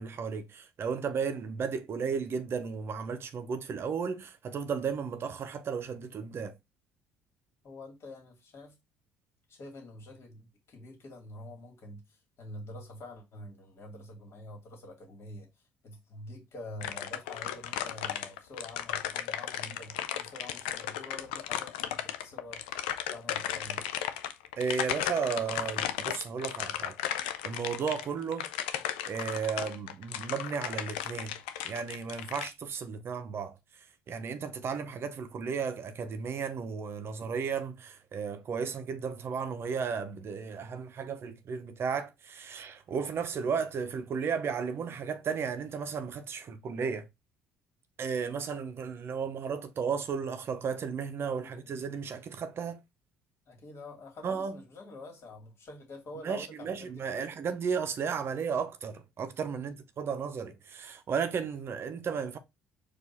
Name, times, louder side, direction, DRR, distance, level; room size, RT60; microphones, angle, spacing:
voice 1, 0.0-6.5 24.6-27.0 27.4-28.5 29.1-31.3 31.6-33.5 34.1-47.1 48.0-52.8 54.2-54.6 56.2-62.4, right 6 dB, 45° right, 0.6 m, -34 dB
voice 2, 7.6-8.8 9.5-15.5 15.8-22.6 23.1-23.8 51.4-51.8 53.5-57.3 59.5-59.7, left 1 dB, 50° left, 2.0 m, -47 dB
sound 1, 16.8-32.5, left 11 dB, 80° left, 0.4 m, -35 dB
4.4 x 2.5 x 4.1 m
hypercardioid pair, 55°, 6 cm